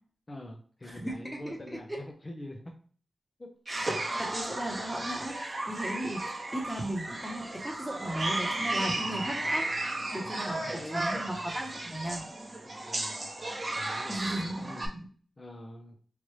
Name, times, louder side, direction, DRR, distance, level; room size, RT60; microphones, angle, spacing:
voice 1, 0.3-2.7 3.4-3.5 10.1-11.3 12.7-13.2 13.8-14.2 14.6-14.9 15.4-16.0, left 1 dB, 35° left, 2 dB, 0.5 m, -44 dB
voice 2, 0.9-2.0 3.7-9.7 10.1-10.6 10.9-12.2 14.1-14.7, right 1 dB, 5° right, 0 dB, 1.0 m, -36 dB
sound 1, 3.7-14.9, right 2 dB, 40° right, 0.8 m, -34 dB
3.1 x 2.5 x 3.1 m, 0.44 s
cardioid pair, 65°, 0 cm